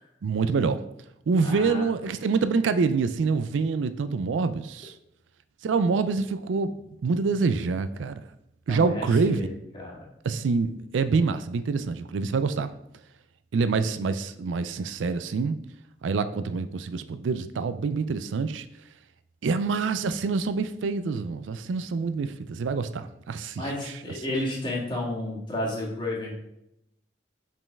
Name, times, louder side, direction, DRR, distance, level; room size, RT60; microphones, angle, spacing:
voice 1, 0.2-0.8 1.3-4.9 5.6-6.7 7.0-8.2 8.7-9.5 10.2-12.7 13.5-15.6 16.0-18.6 19.4-23.9, right 4 dB, 90° right, 0.4 m, -26 dB
voice 2, 1.4-1.8 8.7-10.1 23.5-26.3, left 1 dB, 25° left, 1.7 m, -32 dB
5.3 x 5.3 x 3.5 m
head